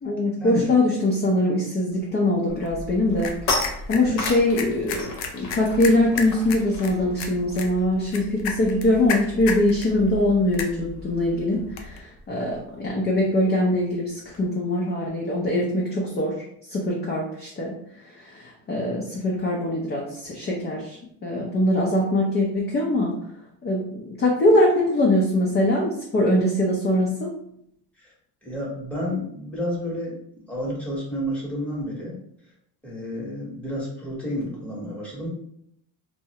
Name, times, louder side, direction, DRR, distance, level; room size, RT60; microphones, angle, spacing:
voice 1, 0.0-16.4 16.7-17.7 18.3-21.0 21.2-23.2 23.6-27.3, left 1 dB, 25° left, -3 dB, 0.4 m, -22 dB
sound 1, 2.1-2.3 2.7-8.7 8.9-9.2 9.4-14.5, left 3 dB, 55° left, 0.8 m, -35 dB
sound 2, 2.5-12.0, left 5 dB, 85° left, 0.5 m, -35 dB
voice 2, 28.4-30.2 30.5-32.1 32.8-35.3, left 1 dB, 5° left, -6 dB, 0.9 m, -30 dB
2.3 x 2.0 x 2.8 m, 0.71 s
cardioid pair, 120°, 41 cm